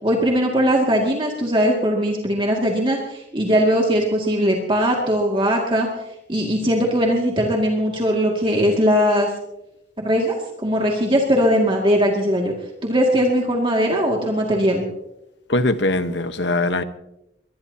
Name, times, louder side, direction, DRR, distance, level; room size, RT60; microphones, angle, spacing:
voice 1, 0.0-5.9 6.3-9.3 10.0-12.5 12.8-14.8, equal, 30° right, 2.3 m, -20 dB
voice 2, 15.5-16.8, left 2 dB, 85° left, 1.2 m, -21 dB
23.0 x 20.5 x 2.9 m
head